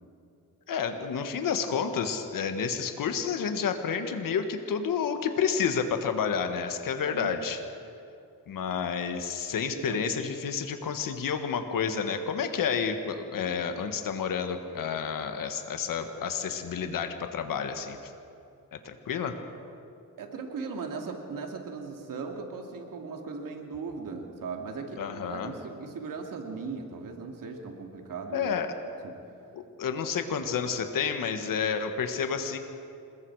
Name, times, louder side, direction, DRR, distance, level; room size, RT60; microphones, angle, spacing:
voice 1, 0.7-7.6 8.5-18.0 18.7-19.4 25.0-25.5 28.3-28.7 29.5-32.6, left 6 dB, 85° left, 7 dB, 1.6 m, -30 dB
voice 2, 20.2-28.5 29.0-29.2 30.4-30.5, right 4 dB, 80° right, 2 dB, 2.8 m, -38 dB
27.0 x 21.0 x 4.9 m, 2.6 s
cardioid pair, 80°, 33 cm